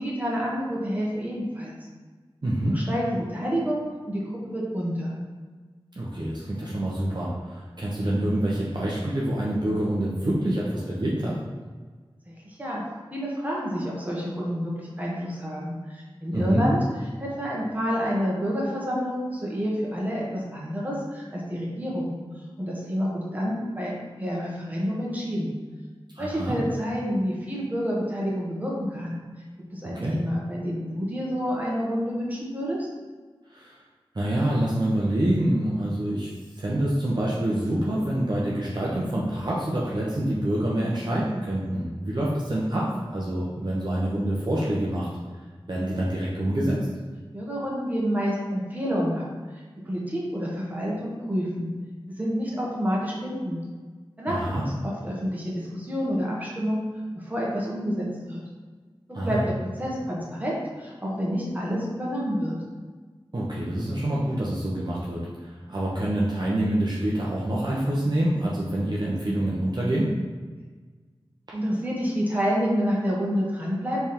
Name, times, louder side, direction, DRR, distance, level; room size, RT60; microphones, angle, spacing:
voice 1, 0.0-1.7 2.7-5.2 12.4-12.8 13.1-16.8 17.2-22.2 22.6-23.9 24.2-25.6 26.2-29.2 29.7-32.9 47.3-49.3 49.8-51.7 52.2-53.6 54.2-56.9 57.1-58.4 59.1-59.5 59.8-62.5 71.5-74.0, equal, 15° right, -5 dB, 1.3 m, -28 dB
voice 2, 2.4-2.8 6.0-11.4 16.3-16.6 26.1-26.5 29.9-30.2 33.5-33.7 34.1-36.3 36.6-45.1 45.7-46.8 54.3-54.6 59.1-59.4 63.3-70.1, right 1 dB, 50° right, -6 dB, 0.8 m, -26 dB
3.5 x 3.5 x 4.4 m, 1.4 s
wide cardioid pair, 55°, 10 cm